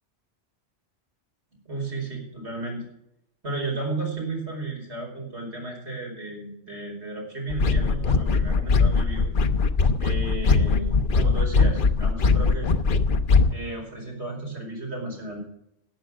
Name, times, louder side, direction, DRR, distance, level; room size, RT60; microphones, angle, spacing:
voice 1, 1.7-2.8 3.4-9.3 10.0-12.7 13.5-15.4, right 3 dB, 65° right, -1 dB, 5.1 m, -33 dB
sound 1, 7.5-13.5, left 4 dB, 50° left, 0.9 m, -21 dB
12.0 x 8.7 x 7.4 m, 0.78 s
omnidirectional pair, 1.2 m